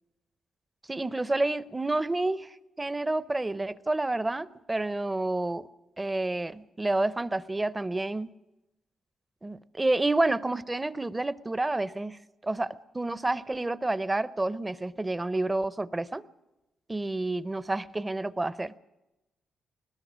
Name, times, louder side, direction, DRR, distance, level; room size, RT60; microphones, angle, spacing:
voice 1, 0.9-5.7 6.0-8.3 9.4-16.2 16.9-18.7, right 2 dB, 15° right, 16 dB, 0.6 m, -29 dB
21.0 x 20.0 x 6.2 m, 1.0 s
cardioid pair, 100°, 0 cm